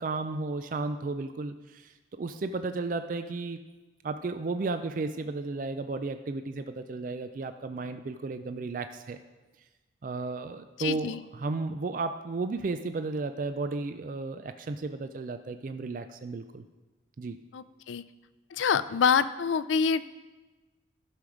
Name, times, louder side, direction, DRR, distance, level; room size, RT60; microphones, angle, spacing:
voice 1, 0.0-3.6 4.0-9.2 10.0-16.6 17.2-17.4, right 3 dB, 45° right, 9 dB, 0.4 m, -34 dB
voice 2, 10.8-11.2 17.5-18.0 18.5-20.0, left 6 dB, 85° left, 15 dB, 0.4 m, -26 dB
12.0 x 6.3 x 5.0 m, 1.2 s
head